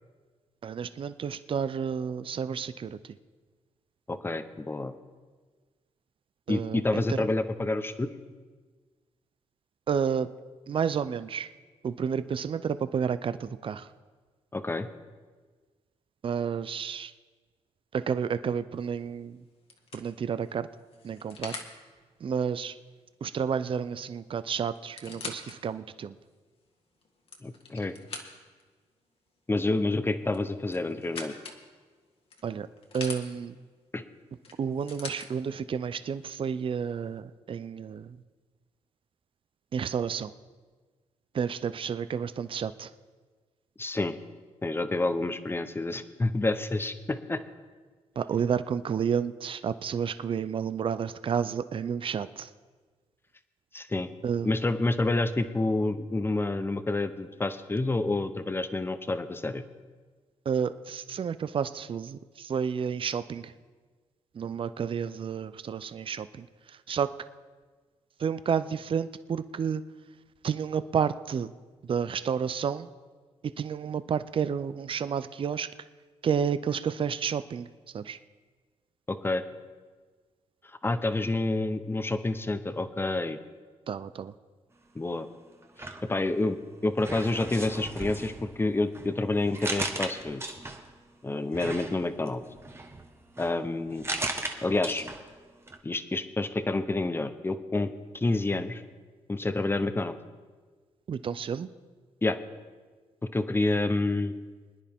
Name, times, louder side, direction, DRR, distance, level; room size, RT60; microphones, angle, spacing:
voice 1, 0.6-3.0 6.5-7.3 9.9-10.3 10.7-11.5 11.8-13.9 16.2-17.1 17.9-19.4 19.9-20.7 21.0-21.5 22.2-22.8 23.2-26.2 32.4-32.7 32.9-33.6 34.6-38.2 39.7-40.3 41.3-42.9 48.2-52.5 54.2-54.5 60.5-63.5 64.3-67.1 68.2-69.8 70.4-71.5 71.8-72.9 73.4-75.7 76.2-77.7 77.9-78.2 83.9-84.3 101.1-101.7, right 7 dB, 45° right, 14 dB, 0.5 m, -31 dB
voice 2, 4.1-4.9 6.5-8.1 14.5-14.9 27.4-27.9 29.5-31.3 33.9-34.0 43.8-44.1 44.6-47.4 53.7-54.1 54.4-59.6 79.1-79.4 80.8-83.4 84.9-85.3 85.8-86.6 86.8-90.4 91.2-92.4 93.4-94.0 94.6-95.0 95.8-98.8 99.3-100.1 102.2-102.4 103.3-104.3, left 2 dB, 20° left, 11 dB, 0.8 m, -28 dB
sound 1, 18.8-19.1 19.7-21.8 23.8-23.9 24.1-24.2 24.8-25.6 26.2-26.3 27.0-28.6 30.3-31.6 32.3-33.2 34.4-35.3 36.2-36.3, left 4 dB, 50° left, 1.7 m, -42 dB
sound 2, 85.6-86.6 87.0-91.0 91.5-95.4 95.7-95.8, right 2 dB, 20° right, 1.3 m, -37 dB
24.0 x 10.0 x 3.6 m, 1.4 s
cardioid pair, 90°, 12 cm